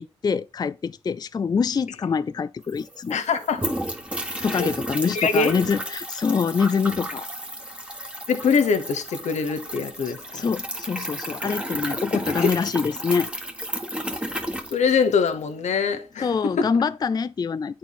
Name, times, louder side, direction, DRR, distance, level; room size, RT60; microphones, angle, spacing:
voice 1, 0.0-3.2 4.4-7.3 10.0-13.3 16.2-17.8, left 5 dB, 35° left, 0.3 m, -25 dB
sound 1, 2.4-2.5 2.6-15.4, right 1 dB, 10° right, 1.5 m, -32 dB
voice 2, 3.1-3.7 4.5-4.7 5.1-5.6 8.3-10.2 12.4-12.5 14.7-16.3 16.6-16.7, left 5 dB, 85° left, 1.1 m, -23 dB
9.0 x 4.5 x 4.0 m
cardioid pair, 60°, 12 cm